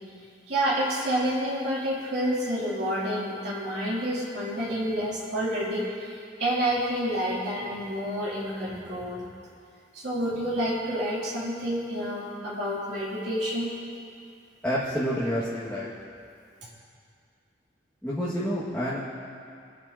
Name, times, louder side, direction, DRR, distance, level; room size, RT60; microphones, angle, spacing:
voice 1, 0.5-9.2 9.9-13.7, equal, 70° right, -8 dB, 3.0 m, -29 dB
voice 2, 14.6-15.9 18.0-19.0, equal, 10° left, -10 dB, 1.9 m, -28 dB
26.5 x 9.5 x 2.9 m, 2.3 s
head